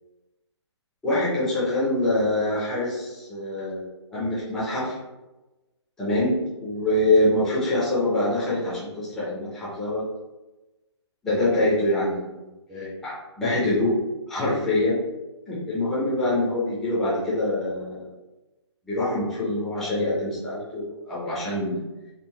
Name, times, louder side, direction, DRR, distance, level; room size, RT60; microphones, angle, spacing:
voice 1, 1.0-3.9 4.1-5.0 6.0-10.0 11.2-13.9 14.3-15.0 15.5-18.0 18.8-21.8, left 1 dB, ahead, -10 dB, 0.4 m, -25 dB
3.8 x 2.3 x 4.1 m, 1.1 s
hypercardioid pair, 170°, 15 cm